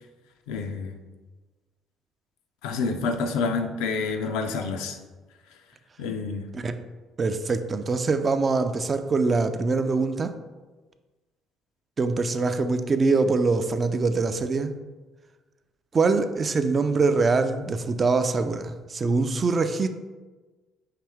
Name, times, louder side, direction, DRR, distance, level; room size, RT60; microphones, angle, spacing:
voice 1, 0.5-1.0 2.6-5.0 6.0-6.5, left 4 dB, 75° left, 5 dB, 0.4 m, -28 dB
voice 2, 7.2-10.3 12.0-14.7 15.9-19.9, right 4 dB, 35° right, 8 dB, 0.4 m, -23 dB
5.7 x 2.7 x 3.4 m, 1.3 s
hypercardioid pair, 55°, 0 cm